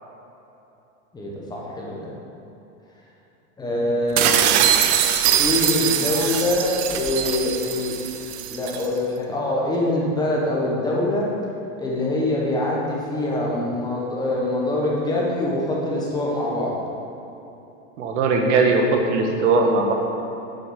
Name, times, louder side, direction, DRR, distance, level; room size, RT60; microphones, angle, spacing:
voice 1, 1.1-2.1 3.6-4.3 5.4-8.0 8.5-11.3 11.8-16.8, left 2 dB, 10° left, -4 dB, 1.4 m, -24 dB
sound 1, 4.2-8.9, right 10 dB, 35° right, 0.6 m, -22 dB
voice 2, 18.0-19.9, right 3 dB, 70° right, 2 dB, 1.6 m, -19 dB
8.5 x 8.4 x 5.2 m, 3.0 s
supercardioid pair, 155°, 37 cm